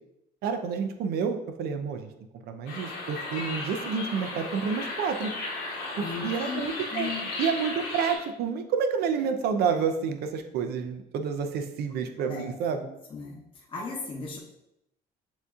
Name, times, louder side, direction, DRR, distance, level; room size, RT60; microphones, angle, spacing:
voice 1, 0.4-2.1 2.4-5.3 6.0-7.1 7.4-12.8, right 6 dB, 70° right, 7 dB, 0.6 m, -29 dB
sound 1, 2.7-8.2, left 2 dB, 80° left, 1.3 m, -35 dB
voice 2, 6.0-6.6 6.9-7.3 12.2-12.5 12.8-14.4, left 4 dB, 30° left, -4 dB, 0.9 m, -37 dB
7.1 x 2.7 x 2.4 m, 0.83 s
cardioid pair, 110°, 17 cm